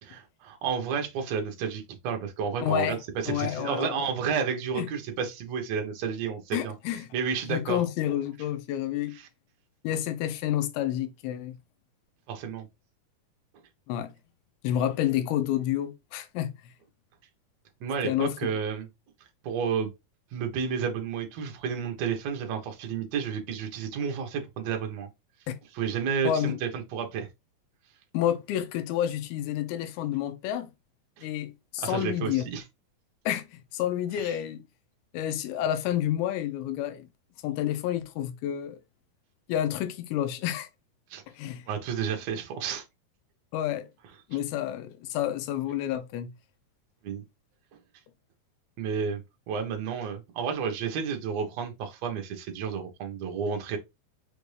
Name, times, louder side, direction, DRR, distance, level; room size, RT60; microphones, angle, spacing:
voice 1, 0.0-3.0 3.2-6.7 7.1-7.8 9.1-9.3 12.3-12.7 17.8-18.9 19.4-19.9 20.3-25.1 25.7-27.3 31.2-31.3 31.8-32.6 34.1-34.4 41.1-41.2 41.7-42.8 47.0-47.2 48.8-53.8, right 6 dB, 70° right, 1.6 m, -31 dB
voice 2, 2.6-3.0 3.3-4.0 4.7-4.9 6.5-7.1 7.5-9.2 9.8-11.6 13.9-14.1 14.6-16.5 18.0-18.3 25.5-25.6 26.2-26.6 28.1-30.7 31.2-32.5 33.3-34.6 35.1-37.1 37.4-38.8 39.5-40.7 41.4-41.6 43.5-43.9 44.3-46.3, left 11 dB, 90° left, 2.6 m, -29 dB
6.3 x 2.6 x 3.2 m
omnidirectional pair, 4.3 m